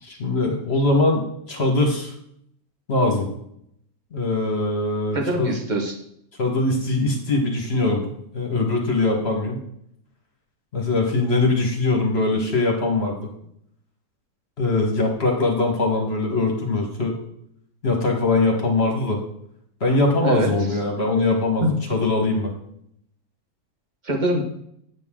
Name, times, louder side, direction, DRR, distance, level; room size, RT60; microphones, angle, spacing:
voice 1, 0.0-2.1 2.9-3.3 4.1-5.6 6.4-8.1 8.3-9.6 10.7-13.2 14.6-17.2 17.8-19.2 19.8-21.6 21.9-22.5, left 2 dB, 45° left, 1 dB, 1.7 m, -22 dB
voice 2, 5.1-5.9 20.2-20.5 21.6-21.8 24.0-24.4, right 1 dB, 30° right, 2 dB, 1.4 m, -23 dB
9.0 x 8.1 x 3.7 m, 0.72 s
omnidirectional pair, 1.6 m